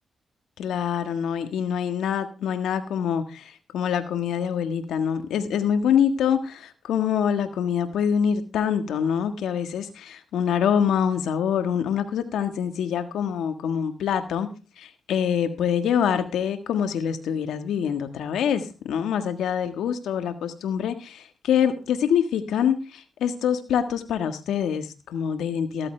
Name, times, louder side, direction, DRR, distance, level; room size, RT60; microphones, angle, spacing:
voice 1, 0.6-14.5 14.8-25.9, left 8 dB, 80° left, 8 dB, 1.5 m, -25 dB
14.5 x 13.5 x 3.3 m, 0.31 s
supercardioid pair, 50°, 0 cm